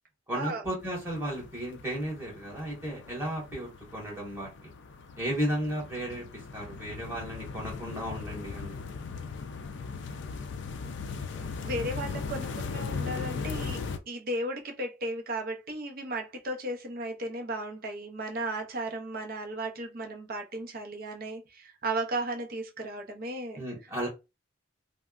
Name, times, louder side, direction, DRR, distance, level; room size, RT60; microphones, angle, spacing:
voice 1, 0.3-4.7 5.2-8.8 23.6-24.1, right 1 dB, 10° right, 1.4 m, -34 dB
sound 1, 0.8-14.0, left 5 dB, 60° left, 0.4 m, -38 dB
voice 2, 11.3-13.8 14.1-23.6, right 1 dB, 45° right, 0.6 m, -35 dB
3.3 x 2.1 x 2.4 m
head